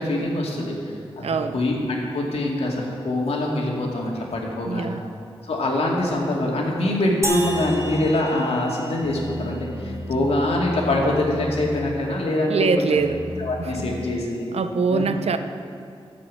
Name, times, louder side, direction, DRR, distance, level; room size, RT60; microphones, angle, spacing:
voice 1, 0.0-4.9 5.4-13.0 13.4-14.5 14.9-15.1, left 1 dB, 75° left, -2 dB, 2.3 m, -24 dB
voice 2, 1.2-1.6 4.6-5.0 12.5-13.2 13.6-13.7 14.5-15.4, right 5 dB, 80° right, 9 dB, 0.7 m, -23 dB
sound 1, 7.2-9.7, right 1 dB, 30° right, 1.3 m, -32 dB
sound 2, 7.3-8.1 9.0-12.0 13.0-14.0, left 1 dB, 10° left, 2.3 m, -34 dB
13.0 x 7.5 x 7.5 m, 2.4 s
wide cardioid pair, 150°, 10 cm